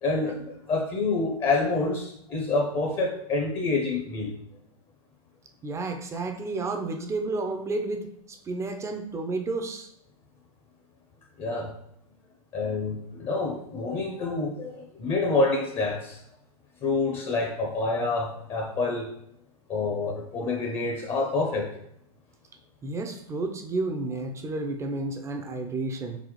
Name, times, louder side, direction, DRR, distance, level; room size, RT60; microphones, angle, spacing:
voice 1, 0.0-4.3 11.4-11.7 12.5-16.2 16.8-19.1 19.7-21.7, left 3 dB, 30° left, 2 dB, 0.7 m, -27 dB
voice 2, 5.6-8.1 8.5-9.9 22.8-26.2, right 3 dB, 15° right, 5 dB, 0.5 m, -31 dB
4.2 x 4.1 x 3.0 m, 0.75 s
hypercardioid pair, 115°, 19 cm